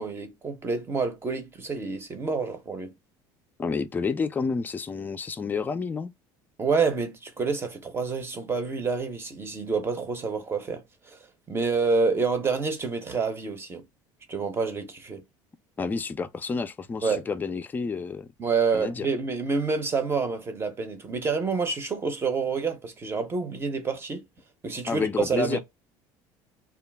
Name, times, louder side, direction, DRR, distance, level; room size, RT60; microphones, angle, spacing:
voice 1, 0.0-2.9 6.6-11.2 11.5-13.8 14.3-15.2 17.0-17.3 18.4-24.2 24.6-25.6, right 4 dB, 25° right, 0.7 m, -28 dB
voice 2, 3.6-6.1 15.8-18.3 18.7-19.1 24.9-25.6, left 5 dB, 20° left, 0.4 m, -29 dB
2.3 x 2.1 x 3.3 m
supercardioid pair, 115°, 10 cm